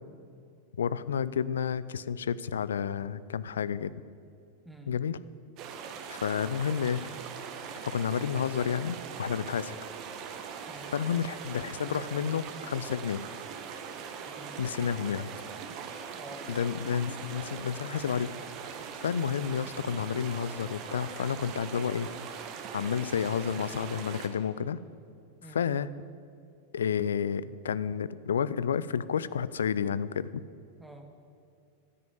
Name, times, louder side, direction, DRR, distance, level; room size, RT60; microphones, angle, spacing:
voice 1, 0.8-3.9 4.9-5.2 6.1-7.1 7.8-9.7 10.9-13.2 14.6-15.3 16.5-18.3 19.0-22.1 22.7-24.8 25.5-25.9 26.7-30.3, left 7 dB, 65° left, 17 dB, 0.5 m, -30 dB
sound 1, 5.6-24.3, right 7 dB, 40° right, 1.5 m, -41 dB
voice 2, 14.2-15.3 16.2-17.0 25.4-25.7 30.8-31.1, right 1 dB, 5° right, 4 dB, 1.7 m, -49 dB
12.5 x 10.0 x 9.2 m, 2.4 s
figure-of-eight pair, 90°, 0 cm